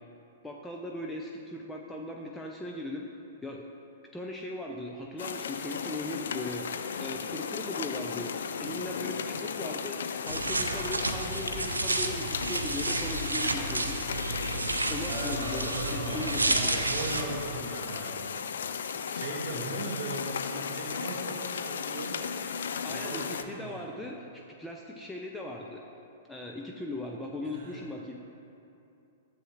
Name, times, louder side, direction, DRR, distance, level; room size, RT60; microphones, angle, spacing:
voice 1, 0.4-3.1 3.4-3.7 4.1-8.3 8.6-14.0 14.9-16.9 19.5-19.8 22.8-25.8 26.3-28.2, left 1 dB, 5° left, -1 dB, 0.5 m, -38 dB
sound 1, 5.2-23.4, left 6 dB, 60° left, 0.4 m, -36 dB
sound 2, 10.3-17.2, right 2 dB, 80° right, 0.5 m, -31 dB
voice 2, 15.1-18.3 19.1-22.3 22.9-23.9 27.4-27.8, right 2 dB, 40° right, -3 dB, 2.0 m, -38 dB
12.5 x 7.7 x 2.5 m, 2.7 s
figure-of-eight pair, 105°, 0 cm